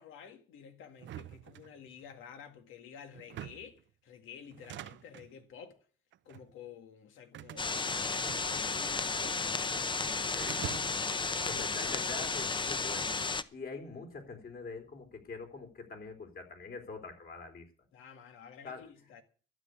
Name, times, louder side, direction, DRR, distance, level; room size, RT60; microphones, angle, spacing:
voice 1, 0.0-5.8 6.3-10.6 11.3-11.7 17.9-19.2, left 7 dB, 85° left, 1.9 m, -51 dB
sound 1, 1.0-2.1 3.1-3.8 4.5-5.3 6.1-6.5 7.3-8.9 9.1-9.9 10.4-11.2, right 12 dB, 70° right, 0.6 m, -46 dB
sound 2, 7.6-13.4, left 4 dB, 25° left, 0.7 m, -33 dB
voice 2, 11.0-13.2 13.5-17.6 18.6-18.9, left 4 dB, 50° left, 3.8 m, -44 dB
12.5 x 7.9 x 8.2 m
cardioid pair, 90°, 20 cm